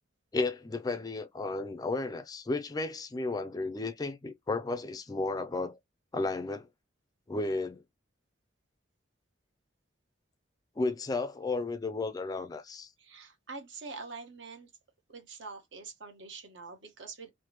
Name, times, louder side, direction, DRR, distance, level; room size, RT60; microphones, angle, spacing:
voice 1, 0.3-5.8 6.1-6.7 7.3-7.8 10.8-12.9, left 3 dB, 20° left, 0.3 m, -33 dB
voice 2, 13.0-14.7 15.1-17.3, right 4 dB, 70° right, 1.1 m, -45 dB
3.3 x 2.1 x 3.0 m
head